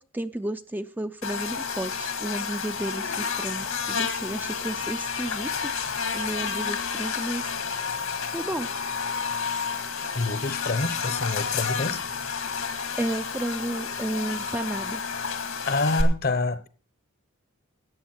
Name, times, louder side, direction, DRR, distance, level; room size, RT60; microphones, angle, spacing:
voice 1, 0.1-5.5 6.1-7.5 8.3-8.7 13.0-15.0, right 1 dB, 10° right, 0.5 m, -32 dB
Buzz, 1.2-16.0, left 5 dB, 80° left, 2.0 m, -30 dB
voice 2, 10.1-12.0 15.7-16.7, left 3 dB, 50° left, 0.9 m, -27 dB
13.5 x 9.2 x 4.4 m
head